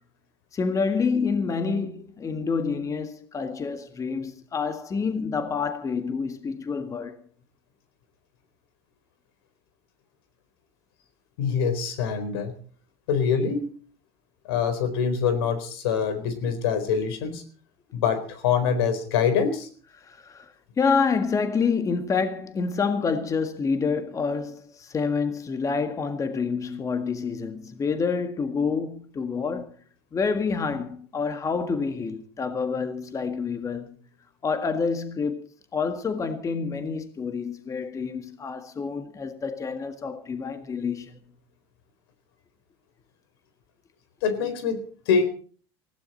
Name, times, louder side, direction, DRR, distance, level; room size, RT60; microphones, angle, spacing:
voice 1, 0.5-7.2 20.0-29.7 30.1-33.9 34.4-41.2, left 5 dB, 25° left, 1.7 m, -28 dB
voice 2, 11.4-12.5 13.1-13.7 14.5-17.4 17.9-19.7 44.2-44.8 45.1-45.3, left 6 dB, 80° left, 4.1 m, -24 dB
20.0 x 16.0 x 4.3 m
supercardioid pair, 105°, 13 cm